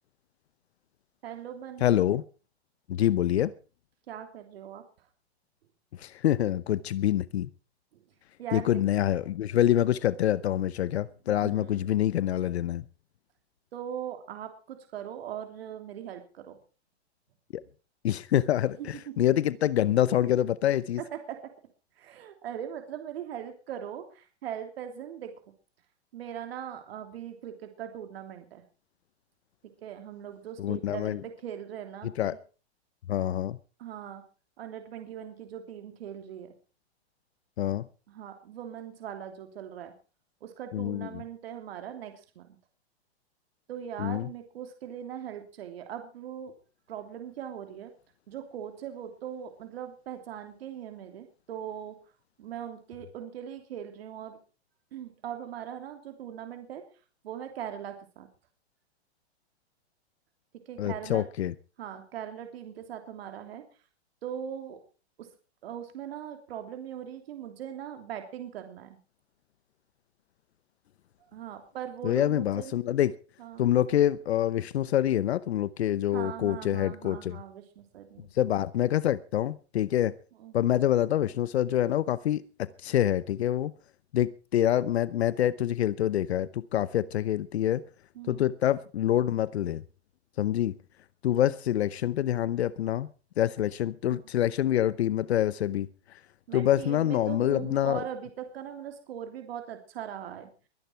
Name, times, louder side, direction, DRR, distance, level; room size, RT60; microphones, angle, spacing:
voice 1, 1.2-2.1 4.1-4.8 7.9-8.0 8.4-8.7 11.4-12.0 13.7-16.6 18.8-19.3 19.9-20.0 21.1-21.5 22.0-25.3 26.1-28.6 29.8-32.4 33.8-34.2 34.6-36.5 38.1-39.9 40.4-42.5 43.7-46.5 46.9-47.9 48.3-52.0 52.4-54.4 54.9-56.8 57.2-58.3 60.7-61.3 61.8-63.6 64.2-64.8 65.2-65.3 65.6-69.0 71.2-72.7 73.4-73.7 76.1-78.3 80.4-80.7 88.1-88.4 94.1-94.2 96.5-100.5, right 9 dB, 65° right, 6 dB, 3.1 m, -40 dB
voice 2, 1.8-2.2 2.9-3.5 6.0-7.5 8.5-12.8 17.5-17.6 18.0-21.0 30.6-31.2 32.2-32.4 33.1-33.6 37.6-37.9 40.7-41.2 44.0-44.3 60.8-61.5 72.0-73.2 73.6-77.4 78.3-80.2 80.5-83.7 84.1-87.8 88.3-89.8 90.4-90.8 91.2-93.1 93.4-96.2 96.5-98.0, left 12 dB, 75° left, 18 dB, 0.9 m, -26 dB
22.5 x 10.5 x 4.5 m, 0.36 s
hypercardioid pair, 145°, 33 cm